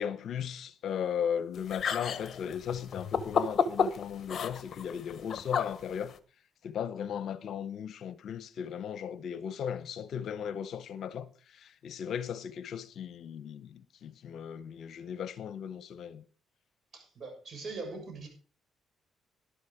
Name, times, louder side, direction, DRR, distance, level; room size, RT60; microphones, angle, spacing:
voice 1, 0.0-6.1 6.6-16.2, left 8 dB, 70° left, 0.9 m, -37 dB
sound 1, 1.5-6.2, left 6 dB, 50° left, 1.1 m, -32 dB
voice 2, 16.9-18.3, right 3 dB, 50° right, 7.0 m, -41 dB
11.5 x 11.5 x 5.0 m
cardioid pair, 90°, 0 cm